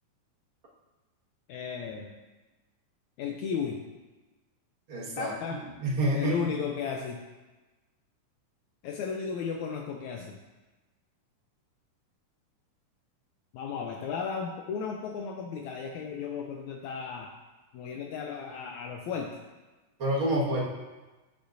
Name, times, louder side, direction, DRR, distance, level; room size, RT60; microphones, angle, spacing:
voice 1, 1.5-2.1 3.2-3.8 5.2-5.6 6.1-7.2 8.8-10.4 13.5-17.3 17.7-19.3, left 6 dB, 80° left, 1 dB, 1.7 m, -34 dB
voice 2, 4.9-6.6 20.0-20.6, right 1 dB, 45° right, -6 dB, 2.0 m, -29 dB
9.7 x 7.0 x 2.6 m, 1.2 s
omnidirectional pair, 3.9 m